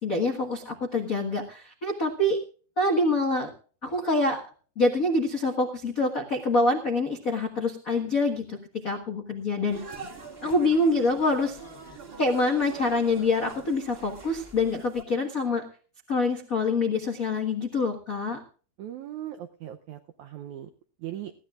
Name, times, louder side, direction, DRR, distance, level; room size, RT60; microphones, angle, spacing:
voice 1, 0.0-2.4 2.8-3.5 3.8-4.4 4.8-8.6 8.8-9.8 10.4-11.6 12.2-15.6 16.1-18.4, left 2 dB, 75° left, 1 dB, 0.7 m, -25 dB
sound 1, 9.7-15.0, right 3 dB, 20° right, 1.7 m, -44 dB
voice 2, 18.8-20.7 21.0-21.3, right 12 dB, 80° right, 7 dB, 1.7 m, -39 dB
20.0 x 15.5 x 2.5 m, 0.40 s
omnidirectional pair, 4.2 m